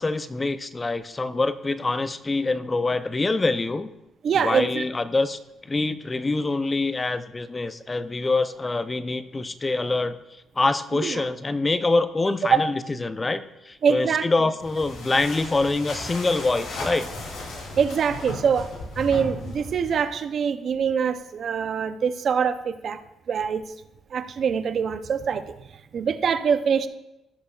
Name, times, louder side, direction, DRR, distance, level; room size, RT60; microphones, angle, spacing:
voice 1, 0.0-3.9 4.3-10.2 10.6-17.1, left 3 dB, 25° left, 0.5 m, -25 dB
voice 2, 4.2-4.8 11.0-11.2 13.8-14.3 17.8-18.7 19.0-23.0 23.3-23.7 24.1-25.5 25.9-26.9, right 6 dB, 55° right, 0.6 m, -24 dB
sound 1, 14.6-20.1, left 1 dB, 70° left, 3.3 m, -36 dB
17.0 x 6.6 x 2.4 m
cardioid pair, 90°, 0 cm